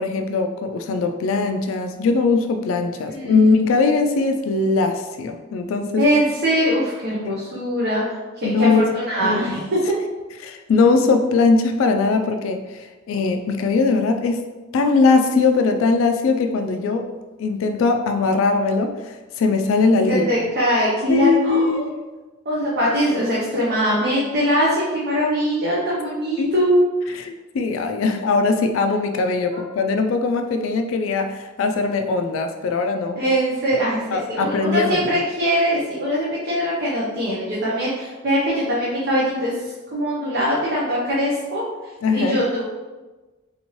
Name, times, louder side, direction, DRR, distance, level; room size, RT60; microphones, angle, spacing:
voice 1, 0.0-6.0 7.3-7.4 8.4-8.8 9.2-9.6 10.4-14.4 14.7-17.1 17.4-20.3 21.1-22.0 26.4-26.5 27.2-33.2 34.1-35.1 42.0-42.4, left 4 dB, 70° left, 6 dB, 0.3 m, -20 dB
voice 2, 3.1-3.5 6.0-9.8 20.1-21.8 22.4-26.7 27.0-27.2 29.5-29.7 33.1-41.6 42.1-42.6, equal, 55° right, -7 dB, 0.8 m, -22 dB
3.4 x 2.8 x 3.0 m, 1.2 s
head